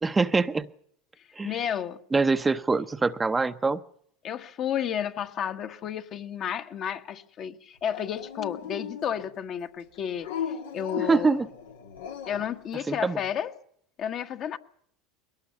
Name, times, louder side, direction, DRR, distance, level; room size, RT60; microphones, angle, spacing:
voice 1, 0.0-0.7 1.4-1.7 2.1-3.8 11.0-11.5 12.9-13.2, right 4 dB, 15° right, 10 dB, 0.7 m, -24 dB
voice 2, 1.4-2.0 4.2-11.3 12.2-13.5 14.0-14.6, left 9 dB, 45° left, 7 dB, 1.3 m, -32 dB
Dog, 7.9-9.4 10.2-12.5, left 8 dB, 85° left, 1.6 m, -36 dB
21.5 x 18.0 x 6.9 m, 0.67 s
hypercardioid pair, 90°, 0 cm